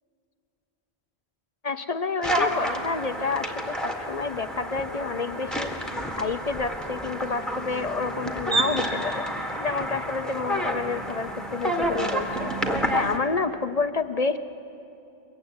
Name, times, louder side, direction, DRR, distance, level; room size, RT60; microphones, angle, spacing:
voice 1, 1.6-5.7 6.2-9.2 9.6-12.5 12.9-14.4, left 4 dB, 40° left, 11 dB, 0.7 m, -29 dB
sound 1, 2.2-13.2, equal, ahead, 1.8 m, -29 dB
22.5 x 22.0 x 9.6 m, 2.7 s
omnidirectional pair, 1.1 m